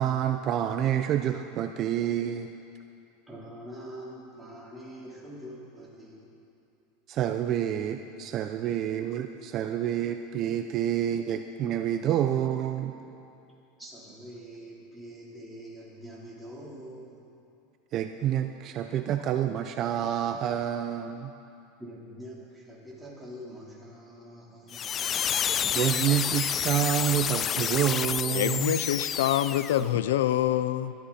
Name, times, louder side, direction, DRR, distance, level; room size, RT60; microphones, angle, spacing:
voice 1, 0.0-2.5 7.1-12.9 17.9-21.3 25.7-28.7, right 10 dB, 40° right, 7 dB, 0.6 m, -28 dB
voice 2, 3.3-6.3 12.7-13.1 13.8-17.2 18.8-19.3 21.8-25.6, equal, 5° right, -6 dB, 4.0 m, -45 dB
sound 1, 24.7-29.9, left 9 dB, 30° left, 0.3 m, -29 dB
voice 3, 28.3-30.9, left 12 dB, 85° left, 14 dB, 0.5 m, -26 dB
21.5 x 13.0 x 4.3 m, 2.6 s
supercardioid pair, 135°, 0 cm